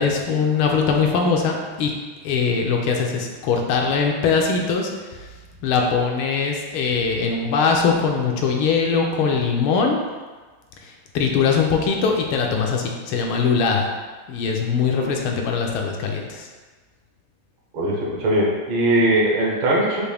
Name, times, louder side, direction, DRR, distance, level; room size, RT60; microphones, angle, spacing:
voice 1, 0.0-1.9 2.2-5.3 5.6-10.0 10.8-13.9 14.3-16.5, left 5 dB, 80° left, 1 dB, 1.4 m, -21 dB
voice 2, 17.7-20.0, right 1 dB, 75° right, -4 dB, 1.9 m, -20 dB
6.2 x 2.5 x 3.3 m, 1.3 s
omnidirectional pair, 2.4 m